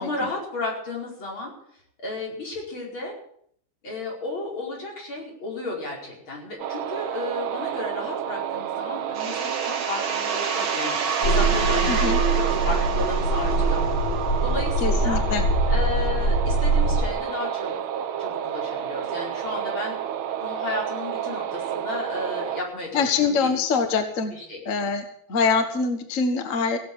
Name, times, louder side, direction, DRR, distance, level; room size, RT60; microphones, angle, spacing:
voice 1, 0.0-1.5 2.0-3.1 3.8-13.9 14.4-15.2 15.7-20.0 20.4-23.5 24.3-24.6, left 2 dB, 85° left, -3 dB, 5.8 m, -33 dB
sound 1, 6.6-22.6, right 10 dB, 85° right, 1.7 m, -30 dB
sound 2, 9.1-14.6, right 5 dB, 60° right, 2.1 m, -30 dB
sound 3, 11.2-17.1, right 2 dB, 65° left, 2.6 m, -23 dB
voice 2, 11.9-12.2 14.8-15.4 22.9-24.3 24.6-26.8, left 4 dB, 40° left, 6 dB, 1.7 m, -24 dB
17.0 x 7.7 x 8.8 m, 0.65 s
omnidirectional pair, 2.2 m